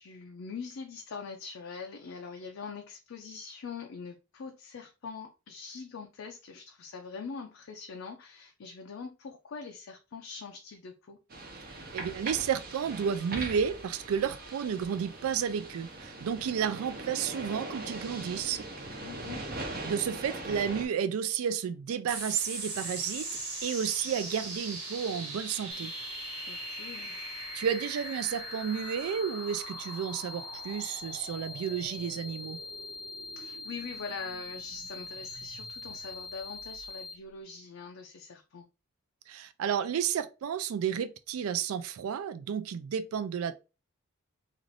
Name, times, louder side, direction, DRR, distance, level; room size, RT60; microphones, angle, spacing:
voice 1, 0.0-11.2 19.0-19.9 26.5-27.2 33.4-38.7, left 5 dB, 60° left, 0.4 m, -43 dB
sound 1, 11.3-20.9, right 2 dB, 45° right, 0.7 m, -41 dB
voice 2, 11.9-18.7 19.8-23.3 23.6-25.9 27.2-27.3 27.5-32.6 39.3-43.6, right 7 dB, 75° right, 0.3 m, -32 dB
sound 2, 22.1-36.9, right 3 dB, 90° right, 1.3 m, -42 dB
sound 3, 25.7-37.1, left 4 dB, 15° right, 0.8 m, -43 dB
2.6 x 2.4 x 3.2 m
head